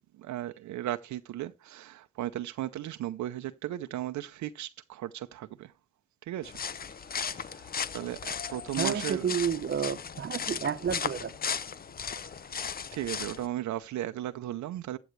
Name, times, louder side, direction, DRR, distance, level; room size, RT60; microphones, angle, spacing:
voice 1, 0.1-5.7 6.2-6.6 7.0-9.3 12.1-12.6 12.9-15.0, right 13 dB, 70° right, 0.6 m, -36 dB
sound 1, 6.4-13.5, left 7 dB, 30° left, 0.6 m, -36 dB
voice 2, 8.8-11.4, right 7 dB, 40° right, 0.9 m, -30 dB
14.5 x 8.0 x 3.2 m
cardioid pair, 90°, 30 cm